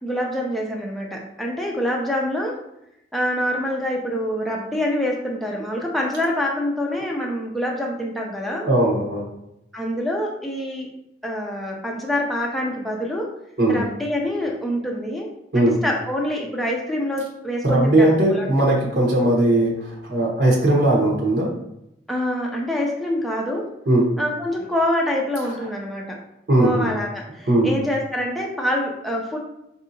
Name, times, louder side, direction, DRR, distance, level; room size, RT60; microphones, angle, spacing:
voice 1, 0.0-2.6 3.1-8.7 9.7-10.9 11.2-13.3 13.7-15.3 15.5-18.5 22.1-23.7 24.2-26.2 26.6-29.4, left 1 dB, ahead, -2 dB, 0.5 m, -26 dB
voice 2, 8.6-9.2 13.6-13.8 15.5-15.7 17.6-21.5 23.9-24.1 26.5-26.8 27.5-27.7, right 1 dB, 65° right, -3 dB, 1.1 m, -18 dB
5.3 x 2.7 x 2.7 m, 0.83 s
head